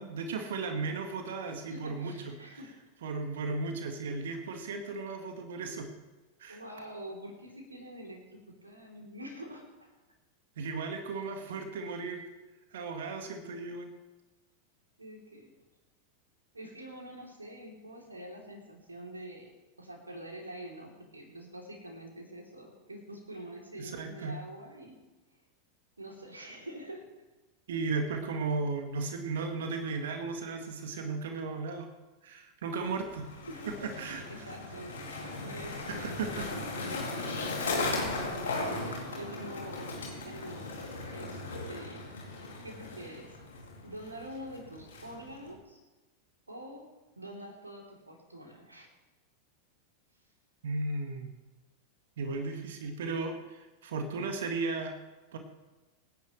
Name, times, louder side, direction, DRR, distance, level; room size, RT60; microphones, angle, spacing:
voice 1, 0.0-2.3 3.0-5.9 6.4-6.6 10.6-12.3 12.7-13.9 23.8-24.4 27.7-31.9 32.2-33.3 33.8-34.5 35.2-35.6 35.9-36.5 36.8-37.1 50.6-51.3 52.2-54.9 55.3-55.4, right 4 dB, 60° right, 5 dB, 1.6 m, -35 dB
voice 2, 1.7-2.7 6.5-9.9 15.0-15.5 16.5-25.0 26.0-27.1 33.5-36.4 38.2-39.9 40.2-41.4 41.7-42.2 42.6-43.3 43.8-45.8 46.5-48.9, right 1 dB, 80° right, 0 dB, 3.3 m, -46 dB
Skateboard, 32.8-45.5, left 3 dB, 65° left, 2.9 m, -37 dB
25.0 x 10.5 x 3.2 m, 1.1 s
figure-of-eight pair, 90°, 0 cm